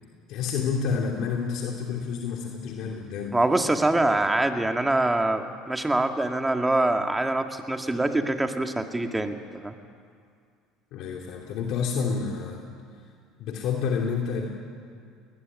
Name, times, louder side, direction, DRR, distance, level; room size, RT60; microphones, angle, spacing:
voice 1, 0.3-3.4 10.9-12.6 13.4-14.5, left 6 dB, 65° left, 0 dB, 2.9 m, -29 dB
voice 2, 3.3-9.7, right 2 dB, 10° right, 5 dB, 2.2 m, -24 dB
20.5 x 20.0 x 9.9 m, 2.2 s
supercardioid pair, 85°, 0 cm